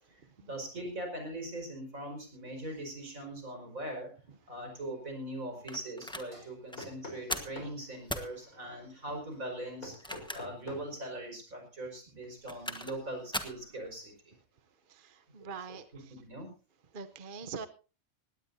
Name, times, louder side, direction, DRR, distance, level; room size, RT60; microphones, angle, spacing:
voice 1, 0.0-4.1 4.5-14.3 15.4-15.8 16.1-16.5, right 1 dB, 70° right, 4 dB, 5.6 m, -41 dB
sound 1, 0.7-1.0 1.4-1.7 2.1-11.2, left 2 dB, 70° left, 4.8 m, -51 dB
sound 2, 5.7-6.3 6.7-6.9 7.3-7.6 8.1-8.3 9.8-10.6 11.0-11.1 12.2-13.0 13.3-13.6, equal, 5° left, 1.2 m, -38 dB
voice 2, 14.9-16.1 16.9-17.7, right 5 dB, 45° right, 10 dB, 0.9 m, -44 dB
19.0 x 17.0 x 2.7 m, 0.35 s
omnidirectional pair, 1.5 m